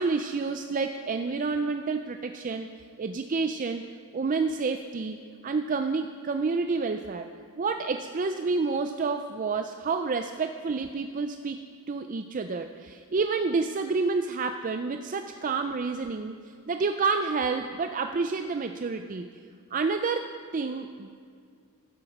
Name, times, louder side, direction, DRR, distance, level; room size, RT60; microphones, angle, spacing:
voice 1, 0.0-2.7 3.0-3.8 4.1-7.3 7.6-11.6 11.9-16.4 16.7-19.3 19.7-20.3 20.5-21.1, right 4 dB, 35° right, 7 dB, 0.4 m, -29 dB
13.5 x 7.8 x 5.9 m, 2.3 s
head